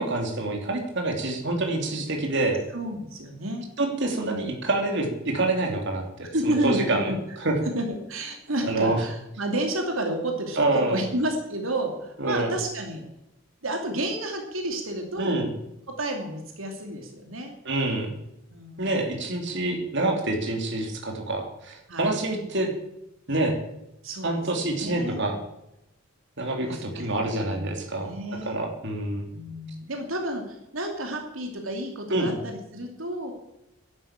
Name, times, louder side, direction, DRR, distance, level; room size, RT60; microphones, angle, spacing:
voice 1, 0.0-2.6 3.8-7.1 7.4-7.6 8.6-9.0 10.6-11.0 12.2-12.5 15.2-15.5 17.6-18.1 18.8-22.7 23.3-23.6 24.2-25.4 26.4-29.3 32.1-32.4, right 2 dB, 60° right, 2 dB, 3.1 m, -27 dB
voice 2, 2.7-3.7 6.3-7.4 7.7-13.0 13.6-15.4 15.9-17.5 18.5-19.0 19.5-19.8 21.9-22.2 24.0-25.3 26.6-28.6 29.3-33.3, right 1 dB, 80° right, 3 dB, 2.7 m, -31 dB
11.5 x 11.0 x 8.9 m, 0.86 s
head